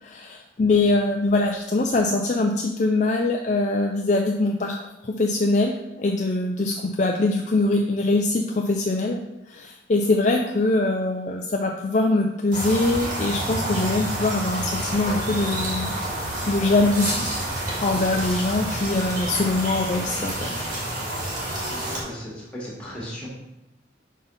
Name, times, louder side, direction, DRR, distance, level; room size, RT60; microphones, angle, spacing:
voice 1, 0.0-9.2 9.5-15.9 16.5-17.2 17.8-20.5, left 2 dB, 40° left, 1 dB, 0.4 m, -23 dB
sound 1, 12.5-22.0, right 1 dB, 45° right, 2.1 m, -29 dB
voice 2, 21.7-23.3, equal, 5° left, -6 dB, 1.8 m, -37 dB
5.1 x 4.0 x 5.5 m, 0.93 s
head